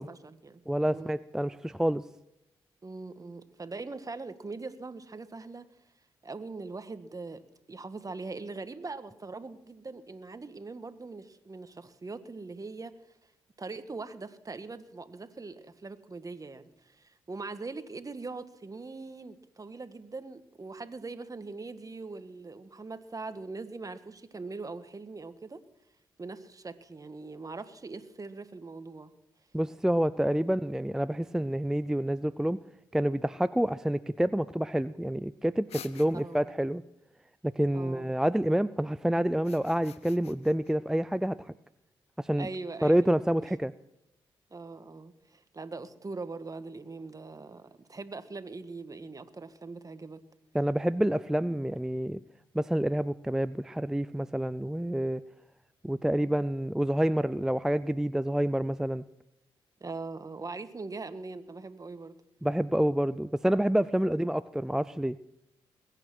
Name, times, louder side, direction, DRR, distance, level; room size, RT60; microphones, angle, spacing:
voice 1, 0.0-0.6 0.9-1.1 2.8-5.7 6.2-7.4 7.7-13.0 13.6-25.6 26.2-29.1 36.1-36.5 37.7-38.1 42.4-43.1 43.4-43.5 44.5-50.2 59.8-62.2 64.0-64.1, right 3 dB, 35° right, 11 dB, 1.5 m, -41 dB
voice 2, 0.7-2.0 29.5-32.6 32.9-36.8 37.6-41.4 42.2-42.5 42.8-43.7 50.5-52.2 52.5-55.2 55.8-59.0 62.4-65.2, right 1 dB, 5° right, 14 dB, 0.5 m, -28 dB
sound 1, 35.7-36.5 39.3-40.7, left 10 dB, 75° left, 0.8 m, -49 dB
21.5 x 9.1 x 6.2 m, 0.85 s
supercardioid pair, 45°, 11 cm